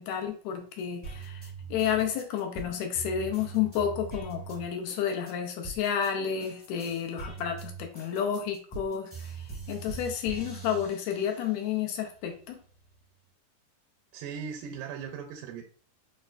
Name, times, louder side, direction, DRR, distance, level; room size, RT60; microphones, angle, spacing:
voice 1, 0.0-12.6, left 8 dB, 90° left, 1.5 m, -31 dB
sound 1, 1.0-6.1 6.4-11.6 12.1-13.0, right 5 dB, 50° left, 0.3 m, -42 dB
voice 2, 14.1-15.6, right 7 dB, 85° right, 2.2 m, -38 dB
6.3 x 2.4 x 2.3 m
omnidirectional pair, 3.8 m